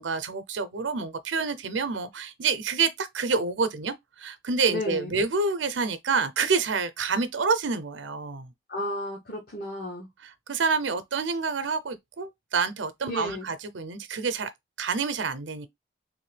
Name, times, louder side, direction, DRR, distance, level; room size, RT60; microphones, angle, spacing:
voice 1, 0.0-8.5 10.2-14.5 14.8-15.7, right 4 dB, 90° right, 0.6 m, -28 dB
voice 2, 4.7-5.1 8.7-10.1 13.1-13.5, left 1 dB, 55° left, 1.0 m, -33 dB
3.6 x 2.6 x 3.2 m
head